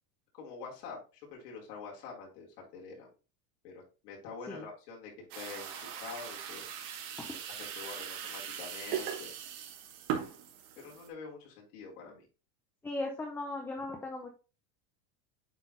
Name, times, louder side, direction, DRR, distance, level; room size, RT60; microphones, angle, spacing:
voice 1, 0.3-3.1 3.6-5.7 6.0-6.7 7.2-9.3 10.8-12.3, left 5 dB, 75° left, -3 dB, 4.2 m, -46 dB
sound 1, 5.3-11.1, right 8 dB, 55° right, 2.4 m, -40 dB
voice 2, 12.8-14.3, left 2 dB, 5° left, 2 dB, 0.5 m, -37 dB
8.8 x 4.0 x 3.9 m, 0.31 s
supercardioid pair, 160°, 47 cm